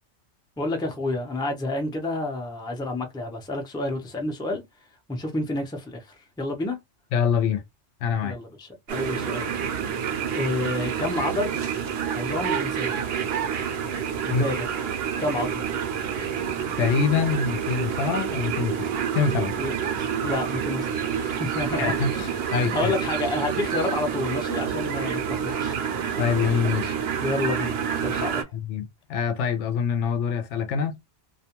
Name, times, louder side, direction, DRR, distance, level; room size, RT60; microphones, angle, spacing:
voice 1, 0.6-4.6 5.1-6.8 8.2-9.5 10.3-11.6 12.1-13.0 14.2-14.7 15.2-15.7 19.6-25.8 27.2-28.5, left 2 dB, 5° left, 0.4 m, -30 dB
voice 2, 7.1-7.6 8.0-8.4 14.3-14.4 16.8-18.9 19.1-19.5 21.8-22.1 22.5-22.9 26.2-26.9 28.5-31.0, left 6 dB, 80° left, 0.9 m, -25 dB
sound 1, 8.9-28.4, right 8 dB, 60° right, 0.8 m, -28 dB
2.4 x 2.2 x 2.9 m
omnidirectional pair, 1.2 m